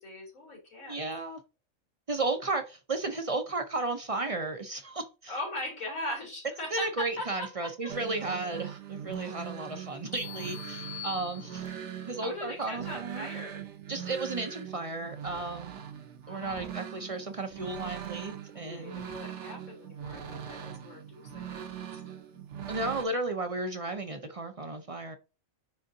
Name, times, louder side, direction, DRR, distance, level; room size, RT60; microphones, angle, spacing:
voice 1, 0.0-1.0 5.3-7.9 12.2-13.6 16.3-16.7 18.5-21.8, left 1 dB, 80° left, 3.5 m, -40 dB
voice 2, 0.9-1.4 2.1-5.3 6.7-11.7 12.1-13.3 13.9-15.8 16.3-19.0 22.7-25.2, right 3 dB, 45° right, 0.4 m, -34 dB
sound 1, 7.9-23.0, right 9 dB, 65° right, 1.1 m, -41 dB
sound 2, 10.1-12.0, left 13 dB, 60° left, 1.4 m, -43 dB
9.7 x 3.8 x 2.7 m
omnidirectional pair, 1.4 m